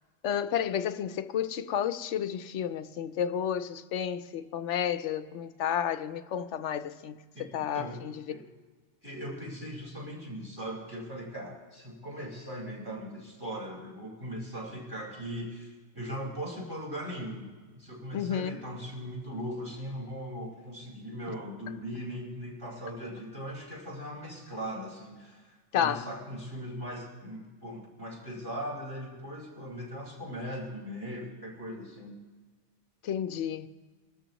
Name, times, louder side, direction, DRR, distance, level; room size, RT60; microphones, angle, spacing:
voice 1, 0.2-8.2 18.1-18.6 21.3-21.4 25.7-26.1 33.0-33.7, left 9 dB, 85° left, 1.0 m, -31 dB
voice 2, 7.3-8.0 8.3-8.4 9.0-17.5 17.7-32.2, equal, 20° right, 4.6 m, -39 dB
26.0 x 13.0 x 3.0 m
omnidirectional pair, 1.2 m